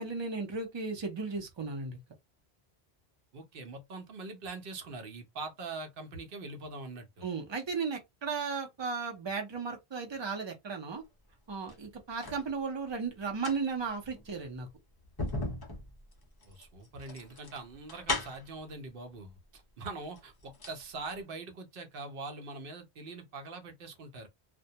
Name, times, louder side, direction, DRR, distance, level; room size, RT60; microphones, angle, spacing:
voice 1, 0.0-2.0 7.2-11.0 11.5-14.7, right 4 dB, 35° right, 0.5 m, -35 dB
voice 2, 3.3-7.3 16.4-24.3, right 3 dB, 60° right, 0.8 m, -43 dB
sound 1, 11.5-12.5 13.2-18.6 19.5-19.6 20.0-20.8 21.1-21.2, left 2 dB, 30° left, 0.4 m, -38 dB
2.1 x 2.1 x 2.7 m
omnidirectional pair, 1.1 m